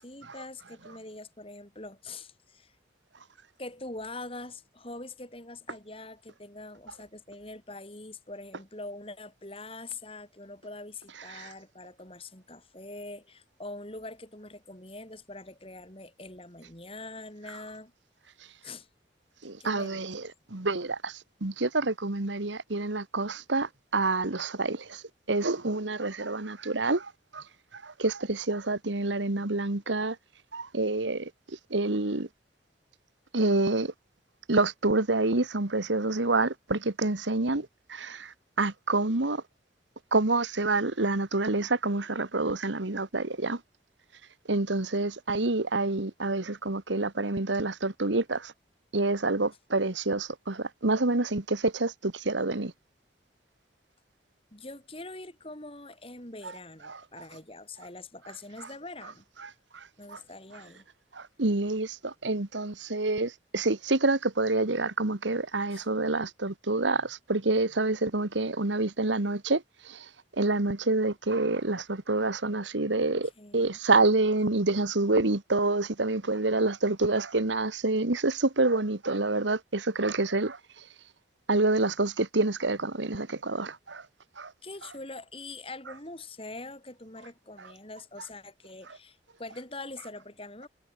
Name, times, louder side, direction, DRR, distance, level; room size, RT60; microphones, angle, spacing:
voice 1, 0.0-2.7 3.6-17.9 18.6-18.9 19.6-20.0 54.5-59.5 60.0-60.8 65.7-65.9 73.4-73.8 84.6-90.7, left 2 dB, 30° left, 7.7 m, -43 dB
voice 2, 19.4-25.0 25.3-27.4 27.7-30.2 30.5-31.3 31.7-32.3 33.3-33.9 34.5-39.4 40.1-43.6 44.5-48.5 48.9-52.7 56.9-57.0 59.4-59.8 60.1-60.2 61.1-70.0 70.4-80.6 81.5-84.0 84.4-84.5, right 2 dB, 90° right, 1.7 m, -27 dB
head